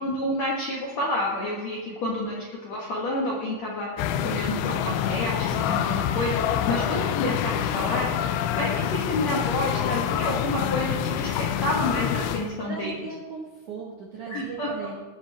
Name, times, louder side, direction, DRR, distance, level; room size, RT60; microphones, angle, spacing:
voice 1, 0.0-2.3 2.6-8.1 8.5-12.9 14.3-14.9, left 1 dB, 70° left, -3 dB, 1.6 m, -29 dB
sound 1, 4.0-12.5, left 9 dB, 85° left, 3.0 m, -26 dB
voice 2, 12.6-14.9, right 4 dB, 70° right, -3 dB, 1.9 m, -37 dB
19.0 x 7.4 x 3.3 m, 1.4 s
omnidirectional pair, 5.3 m